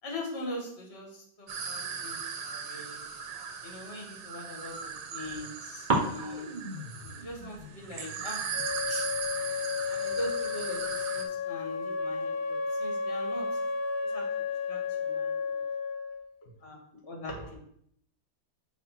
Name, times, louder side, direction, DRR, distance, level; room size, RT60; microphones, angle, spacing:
voice 1, 0.0-3.0 3.6-6.5 7.2-8.5 8.9-9.1 9.8-13.5 14.0-15.6 16.4-17.6, left 1 dB, 30° left, 0 dB, 2.3 m, -41 dB
sound 1, 1.5-11.2, right 6 dB, 80° right, 1.8 m, -38 dB
sound 2, 1.9-4.1 4.6-5.5 5.9-11.4, right 2 dB, 30° right, 1.3 m, -38 dB
Wind instrument woodwind instrument, 8.5-16.2, left 5 dB, 75° left, 0.5 m, -32 dB
7.2 x 4.1 x 6.0 m, 0.67 s
omnidirectional pair, 2.2 m